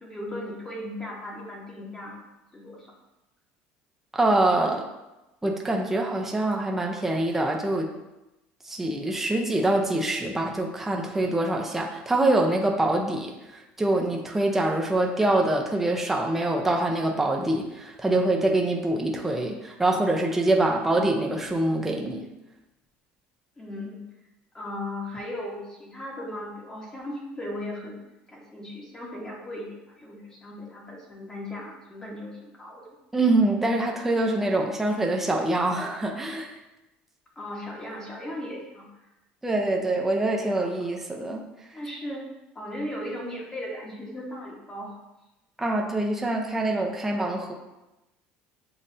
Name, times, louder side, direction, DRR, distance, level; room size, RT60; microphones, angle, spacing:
voice 1, 0.0-2.2 2.5-2.9 23.6-24.1 24.5-28.0 28.3-32.8 37.3-38.9 40.4-40.7 41.7-42.3 42.5-44.9, left 1 dB, 15° left, -3 dB, 1.1 m, -37 dB
voice 2, 4.1-4.9 5.4-7.9 8.7-22.2 33.1-36.5 39.4-41.4 45.6-47.5, right 2 dB, 5° right, 0 dB, 0.6 m, -25 dB
7.2 x 2.6 x 2.7 m, 0.97 s
cardioid pair, 130°, 4 cm